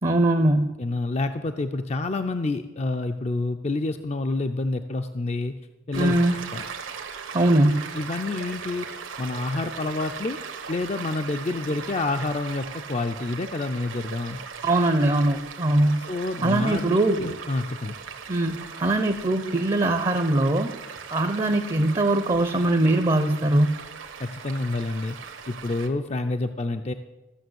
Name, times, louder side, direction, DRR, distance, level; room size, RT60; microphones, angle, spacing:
voice 1, 0.0-0.7 6.0-6.4 7.3-7.9 14.6-16.1 16.4-17.3 18.3-20.7 21.1-23.8, right 1 dB, 25° right, 8 dB, 0.6 m, -21 dB
voice 2, 0.8-5.6 5.9-6.1 6.5-6.7 7.9-8.9 9.2-10.4 10.7-14.4 16.1-17.9 24.2-25.2 25.5-26.9, left 2 dB, 30° left, 7 dB, 0.4 m, -28 dB
Stream, 5.9-25.9, right 6 dB, 75° right, 1.3 m, -39 dB
14.5 x 6.8 x 7.9 m, 1.1 s
head